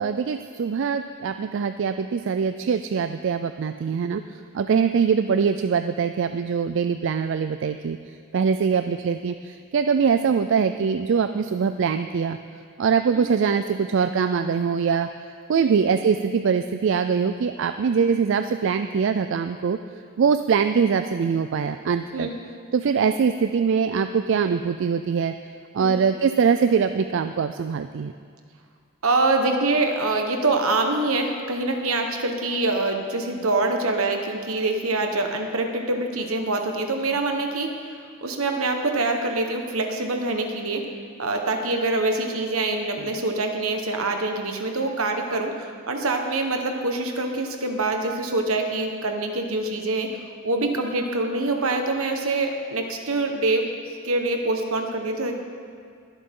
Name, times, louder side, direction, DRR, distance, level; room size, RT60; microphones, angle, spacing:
voice 1, 0.0-12.4 12.8-15.1 15.5-19.8 20.2-22.3 22.7-25.3 25.7-28.1 43.0-43.1, right 6 dB, 60° right, 9 dB, 0.3 m, -23 dB
voice 2, 29.0-38.0 38.2-40.9 41.2-50.1 50.4-53.7 54.0-55.4, right 2 dB, 75° right, 4 dB, 1.3 m, -25 dB
22.0 x 8.1 x 3.8 m, 2.2 s
head